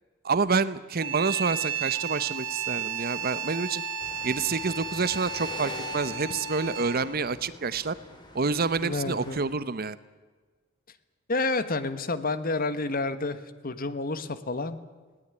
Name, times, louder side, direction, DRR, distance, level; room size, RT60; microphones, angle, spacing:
voice 1, 0.2-3.8 4.2-7.9 8.3-10.0, right 4 dB, 45° right, 16 dB, 0.9 m, -28 dB
sound 1, 1.0-7.2, right 7 dB, 75° right, 3.2 m, -33 dB
sound 2, 4.0-9.4, left 1 dB, 20° left, 4.0 m, -45 dB
voice 2, 8.8-9.4 11.3-14.8, left 3 dB, 45° left, 12 dB, 1.4 m, -29 dB
20.5 x 18.0 x 9.7 m, 1.4 s
head